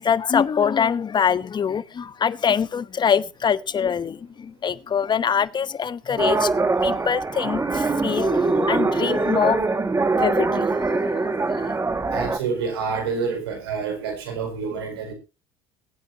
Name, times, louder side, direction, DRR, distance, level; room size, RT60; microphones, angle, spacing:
voice 1, 0.0-9.7 10.1-11.7, left 7 dB, 35° left, 0.9 m, -24 dB
sound 1, 6.2-12.4, right 3 dB, 25° right, 2.0 m, -23 dB
voice 2, 12.1-15.1, right 5 dB, 90° right, 4.5 m, -28 dB
22.5 x 9.1 x 2.9 m
hypercardioid pair, 70°, 13 cm